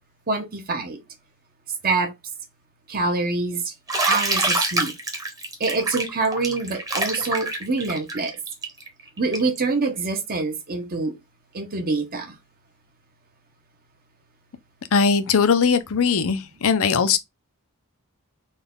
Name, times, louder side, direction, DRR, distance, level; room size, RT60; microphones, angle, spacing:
voice 1, 0.3-1.0 1.8-2.1 2.9-3.7 4.1-4.9 5.6-8.4 9.2-11.1 11.5-12.3, right 3 dB, 45° right, 0.8 m, -25 dB
Bathtub (filling or washing), 3.9-9.6, right 2 dB, 15° right, 0.9 m, -26 dB
voice 2, 14.9-17.2, left 5 dB, 65° left, 0.6 m, -19 dB
4.0 x 2.3 x 3.5 m
head